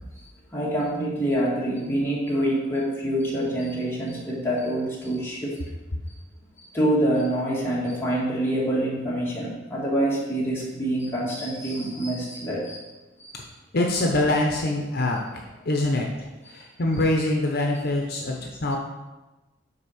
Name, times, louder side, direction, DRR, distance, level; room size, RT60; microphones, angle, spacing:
voice 1, 0.5-5.6 6.6-12.9 13.2-13.3, right 1 dB, 15° left, -6 dB, 1.9 m, -26 dB
voice 2, 13.7-18.8, left 1 dB, 55° left, 0 dB, 0.8 m, -25 dB
5.9 x 4.5 x 6.3 m, 1.1 s
head